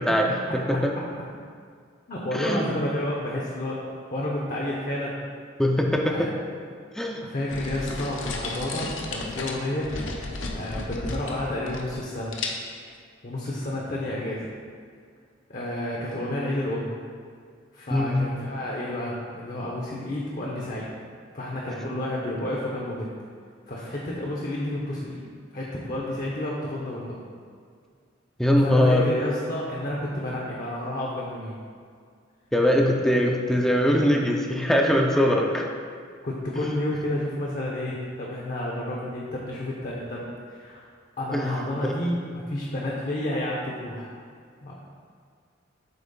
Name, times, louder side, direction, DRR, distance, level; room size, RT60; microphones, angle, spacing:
voice 1, 0.2-0.8 2.1-3.8 4.1-5.2 6.0-6.3 7.2-9.9 10.5-12.4 13.2-14.5 15.5-16.9 17.7-20.9 21.3-23.1 23.7-25.2 25.5-27.2 28.6-31.6 35.3-35.5 36.2-40.9 41.2-44.1 44.6-44.8, left 1 dB, 45° left, -3 dB, 0.8 m, -30 dB
voice 2, 2.3-2.8 5.6-6.3 7.0-7.2 17.9-18.2 28.4-29.1 32.5-35.6 41.3-41.5 41.8-41.9, equal, ahead, 1 dB, 0.5 m, -21 dB
sound 1, 7.5-12.1 12.3-12.9, left 3 dB, 85° left, 0.7 m, -34 dB
7.9 x 3.1 x 5.3 m, 2.1 s
head